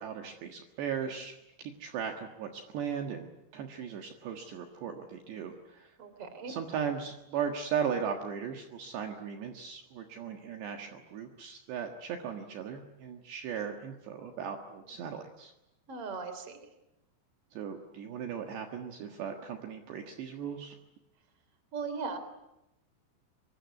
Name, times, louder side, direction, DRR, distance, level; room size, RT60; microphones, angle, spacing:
voice 1, 0.0-6.0 6.5-15.5 17.5-20.8, right 7 dB, 65° right, 4 dB, 3.4 m, -37 dB
voice 2, 6.0-6.5 15.9-16.7 21.7-22.2, right 4 dB, 30° right, 10 dB, 3.7 m, -38 dB
25.0 x 23.0 x 9.5 m, 0.91 s
omnidirectional pair, 5.8 m